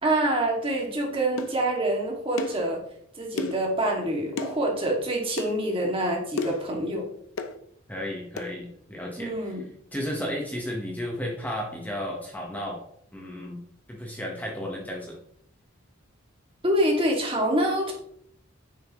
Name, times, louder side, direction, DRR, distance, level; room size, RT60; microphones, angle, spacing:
voice 1, 0.0-2.8 3.2-7.1 9.2-9.7 16.6-17.9, right 1 dB, 25° right, -1 dB, 2.2 m, -26 dB
sound 1, 1.4-1.6 2.4-2.6 3.4-3.7 4.4-4.6 5.4-5.5 6.4-6.7 7.4-7.6 8.4-8.5, left 3 dB, 80° left, 0.8 m, -31 dB
voice 2, 7.9-9.6 9.9-12.8 13.1-13.6 13.9-15.2, equal, 10° left, -1 dB, 1.2 m, -33 dB
9.7 x 7.4 x 3.1 m, 0.68 s
head